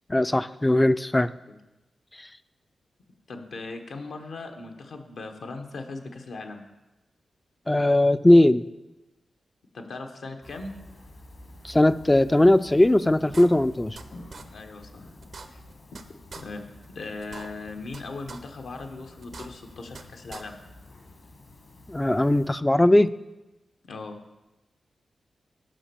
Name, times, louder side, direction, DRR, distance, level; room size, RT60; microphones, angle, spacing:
voice 1, 0.1-1.3 7.7-8.7 11.6-14.0 21.9-23.1, left 1 dB, 15° left, 15 dB, 0.3 m, -19 dB
voice 2, 3.3-6.6 9.7-10.7 14.5-15.1 15.5-15.6 16.3-16.6 16.9-20.6 23.9-24.2, left 3 dB, 75° left, 5 dB, 0.9 m, -38 dB
sound 1, 10.4-22.5, left 2 dB, 55° left, 1.3 m, -49 dB
sound 2, 12.8-12.9 13.3-14.0 14.3-14.4 14.8-14.9 15.2-16.0 16.3-16.4 16.8-16.9 17.2-18.0 18.3-18.4 18.8-18.9 19.2-20.0 20.3-20.4, right 4 dB, 65° right, 0.6 m, -42 dB
7.3 x 5.2 x 6.9 m, 1.0 s
cardioid pair, 60°, 0 cm